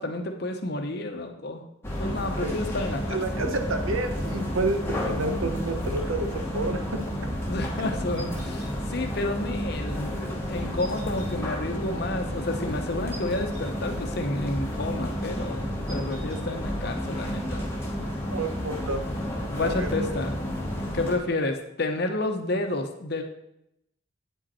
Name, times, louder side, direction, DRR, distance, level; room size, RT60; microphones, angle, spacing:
voice 1, 0.0-1.6 2.0-3.2 7.5-17.6 19.5-20.4 20.9-23.2, left 2 dB, 50° left, 5 dB, 0.9 m, -30 dB
sound 1, 1.8-21.2, equal, 10° left, 1.1 m, -31 dB
voice 2, 3.1-6.8 18.3-19.2 19.6-19.9, right 2 dB, 80° right, 6 dB, 0.9 m, -29 dB
sound 2, 8.2-8.7 10.8-11.3 13.1-13.7 15.9-16.4, right 1 dB, 30° right, 1.9 m, -46 dB
8.9 x 5.2 x 4.3 m, 0.80 s
head